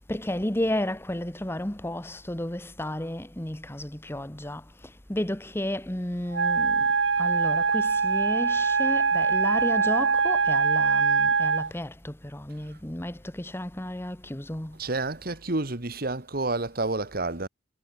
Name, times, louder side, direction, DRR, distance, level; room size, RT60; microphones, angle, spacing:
voice 1, 0.1-6.9 7.2-14.8, left 1 dB, 10° left, 1.3 m, -32 dB
Wind instrument woodwind instrument, 6.3-11.7, right 5 dB, 75° right, 1.1 m, -23 dB
voice 2, 14.8-17.5, right 2 dB, 50° right, 1.8 m, -29 dB
head